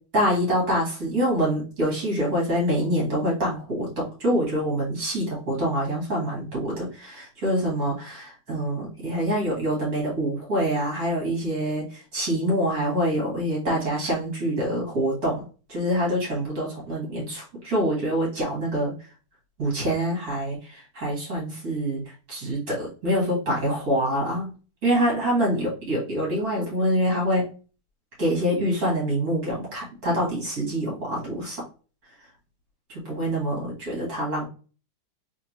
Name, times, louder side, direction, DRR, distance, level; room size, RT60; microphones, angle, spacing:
voice 1, 0.1-18.9 19.6-22.0 22.3-24.5 24.8-27.5 28.2-31.6 32.9-34.5, equal, 45° right, -4 dB, 2.1 m, -25 dB
3.7 x 3.5 x 2.9 m, 0.36 s
omnidirectional pair, 2.4 m